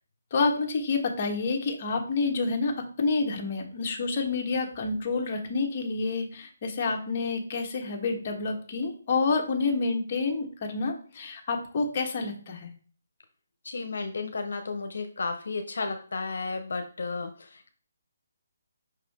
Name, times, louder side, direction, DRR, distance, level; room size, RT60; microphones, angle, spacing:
voice 1, 0.3-12.7, left 4 dB, 35° left, 1 dB, 1.2 m, -28 dB
voice 2, 13.6-17.7, left 4 dB, 70° left, 6 dB, 0.8 m, -33 dB
5.5 x 4.8 x 3.6 m, 0.41 s
hypercardioid pair, 165°, 0 cm